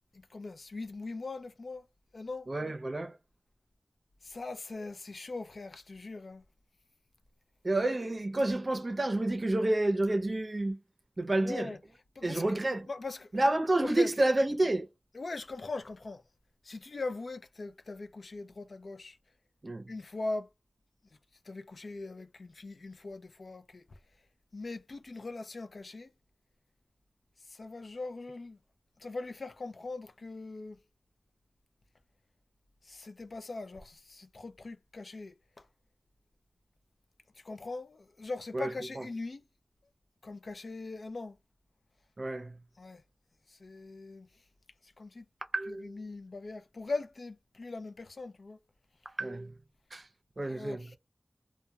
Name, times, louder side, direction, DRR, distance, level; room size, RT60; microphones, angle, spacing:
voice 1, 0.1-1.9 2.1-2.5 4.2-6.4 11.4-11.8 12.2-12.4 12.9-13.4 13.8-14.1 15.1-16.2 16.6-19.2 19.9-20.5 21.5-23.8 24.5-26.1 27.5-28.6 29.0-30.8 32.8-35.7 37.4-39.4 40.2-41.4 42.8-43.0 43.5-44.3 44.8-45.2 45.7-48.6 50.4-51.0, left 3 dB, 70° left, 0.4 m, -41 dB
voice 2, 2.5-3.2 7.6-10.8 11.2-11.7 12.2-12.9 13.3-14.9 19.6-19.9 38.5-38.7 38.9-39.0 42.2-42.6 45.5-46.0 49.2-49.5 49.9-50.1 50.4-50.9, right 2 dB, 45° right, 0.5 m, -29 dB
2.2 x 2.1 x 2.8 m
wide cardioid pair, 80°, 0 cm